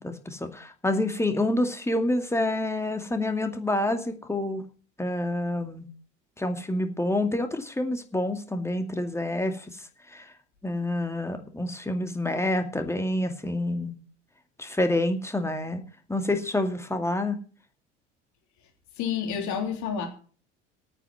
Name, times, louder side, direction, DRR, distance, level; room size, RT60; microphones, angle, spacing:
voice 1, 0.0-4.6 5.0-5.9 6.4-9.8 10.1-10.3 10.6-13.9 14.6-15.8 16.1-17.4, left 1 dB, 5° left, 2.2 m, -28 dB
voice 2, 19.0-20.1, left 7 dB, 50° left, 3.7 m, -29 dB
9.1 x 9.0 x 9.3 m
figure-of-eight pair, 70°, 36 cm